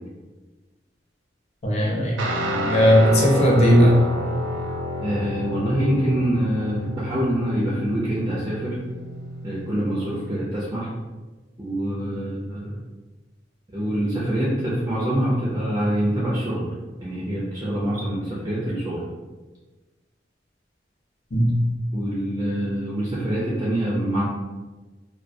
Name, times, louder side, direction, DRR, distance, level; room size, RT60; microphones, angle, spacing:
voice 1, 1.6-2.2 2.7-4.0 21.3-21.7, equal, 35° left, -2 dB, 0.5 m, -17 dB
Guitar, 2.2-10.3, left 1 dB, 85° right, 0.4 m, -30 dB
voice 2, 5.0-8.8 9.4-10.9 11.6-12.8 13.7-16.7 17.0-19.0 21.9-24.2, right 1 dB, 20° right, -7 dB, 0.4 m, -25 dB
2.2 x 2.1 x 2.6 m, 1.2 s
head